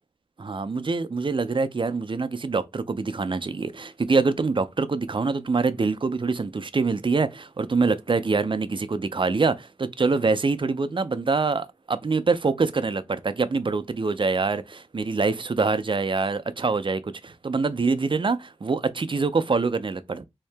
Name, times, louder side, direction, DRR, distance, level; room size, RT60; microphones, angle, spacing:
voice 1, 0.4-20.2, right 4 dB, 45° right, 0.4 m, -25 dB
3.6 x 2.8 x 3.3 m
wide cardioid pair, 70°, 12 cm